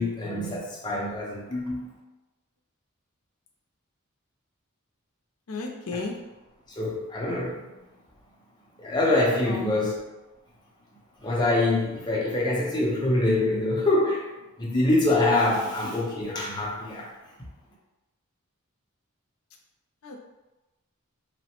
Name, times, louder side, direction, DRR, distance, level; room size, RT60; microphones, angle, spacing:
voice 1, 0.0-1.9 6.7-7.7 8.8-10.0 11.2-14.3 14.6-17.1, left 2 dB, 20° left, -4 dB, 0.6 m, -25 dB
voice 2, 5.5-6.2 9.4-9.9 20.0-20.2, left 3 dB, 85° left, 2 dB, 0.5 m, -34 dB
3.0 x 2.1 x 2.9 m, 1.0 s
head